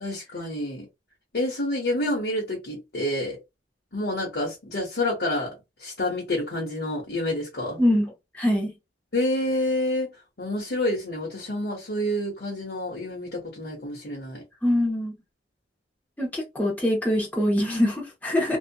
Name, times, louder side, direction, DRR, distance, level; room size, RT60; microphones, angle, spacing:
voice 1, 0.0-0.9 1.3-3.4 3.9-7.8 9.1-14.4, left 1 dB, 60° left, 1.0 m, -28 dB
voice 2, 7.8-8.7 14.6-15.2 16.2-18.6, left 1 dB, 10° left, 0.9 m, -24 dB
2.7 x 2.4 x 2.2 m
head